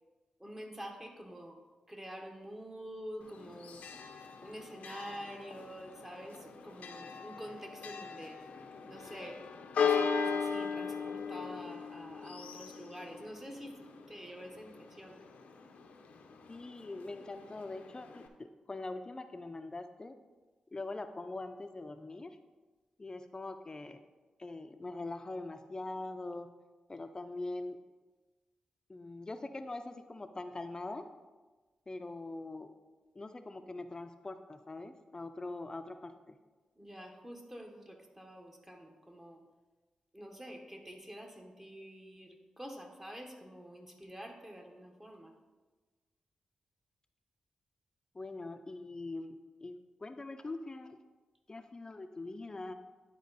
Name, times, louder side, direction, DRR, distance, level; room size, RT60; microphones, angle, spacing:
voice 1, 0.4-1.6 1.9-3.8 4.4-8.4 8.9-9.4 9.8-13.8 14.1-15.2 36.8-39.4 40.1-45.3, equal, 15° right, 2 dB, 1.3 m, -47 dB
Church bell, 3.2-18.3, left 6 dB, 85° left, 0.7 m, -39 dB
voice 2, 16.5-20.1 20.7-22.4 23.0-24.0 24.4-26.5 26.9-27.8 28.9-31.1 31.9-32.7 33.2-36.4 48.1-49.4 49.6-51.0 51.5-52.7, left 2 dB, 30° left, 8 dB, 0.5 m, -43 dB
10.5 x 4.5 x 4.1 m, 1.3 s
cardioid pair, 60°, 2 cm